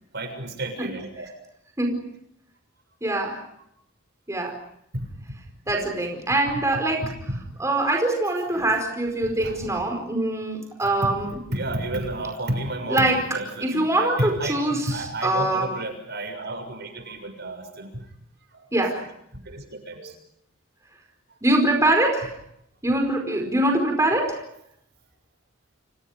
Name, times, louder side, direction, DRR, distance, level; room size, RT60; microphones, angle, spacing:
voice 1, 0.1-1.3 4.9-5.1 6.5-6.6 7.0-7.4 8.5-8.7 9.2-9.8 10.8-11.1 11.5-18.1 18.5-18.7 19.0-19.1 19.4-20.1 21.3-21.4, right 1 dB, 55° right, 7 dB, 6.8 m, -32 dB
voice 2, 3.0-3.4 4.3-4.6 5.7-7.0 7.6-11.3 12.9-13.2 13.6-15.7 18.7-19.0 21.4-22.3 22.8-24.4, right 1 dB, 15° right, 3 dB, 4.9 m, -23 dB
29.5 x 28.5 x 5.2 m, 0.73 s
head